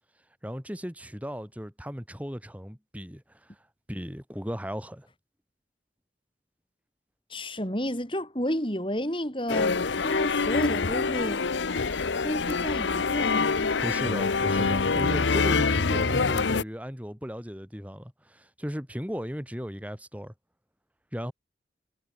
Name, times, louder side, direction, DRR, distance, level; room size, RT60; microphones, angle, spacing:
voice 1, 0.4-3.6 3.9-5.1 13.8-20.3 21.1-21.3, equal, 10° right, 7.2 m, -36 dB
voice 2, 7.3-11.4 12.2-13.7, equal, 30° left, 6.8 m, -31 dB
sound 1, 9.5-16.6, left 4 dB, 90° left, 0.9 m, -25 dB
head